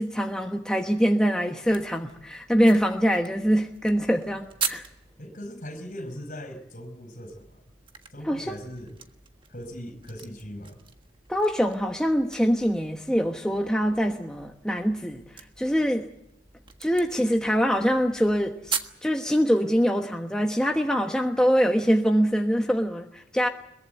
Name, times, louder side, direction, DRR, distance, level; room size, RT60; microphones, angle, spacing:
voice 1, 0.0-4.8 8.2-8.6 11.3-15.2 15.6-16.1 16.8-23.5, equal, 5° left, 1.2 m, -24 dB
sound 1, 1.6-5.2 7.3-19.0, right 6 dB, 30° right, 1.5 m, -40 dB
voice 2, 5.2-7.6 8.1-8.9 9.5-10.8, equal, 45° left, 4.9 m, -39 dB
22.5 x 22.5 x 8.0 m
head